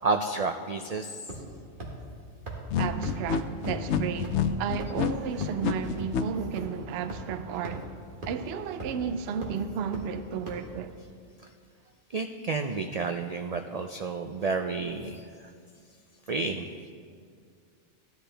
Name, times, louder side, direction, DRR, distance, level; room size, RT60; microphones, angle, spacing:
voice 1, 0.0-1.3 12.1-15.5 16.3-16.9, right 4 dB, 85° right, 0.3 m, -31 dB
sound 1, 1.3-1.5 1.8-1.9 2.5-2.6 3.0-3.1 3.6-3.7 4.2-4.3 4.8-5.0 5.4-5.5 6.0-6.1 6.6-6.7 7.1-7.2 7.6-7.7 8.2-8.3 8.8-9.0 9.4-9.5 9.9-10.0 10.5-10.6, right 2 dB, 45° right, 1.6 m, -38 dB
sound 2, 2.7-6.2, left 8 dB, 75° left, 0.9 m, -28 dB
voice 2, 2.8-8.0 8.2-10.9, right 7 dB, 65° right, 0.8 m, -33 dB
15.0 x 10.5 x 3.4 m
omnidirectional pair, 1.3 m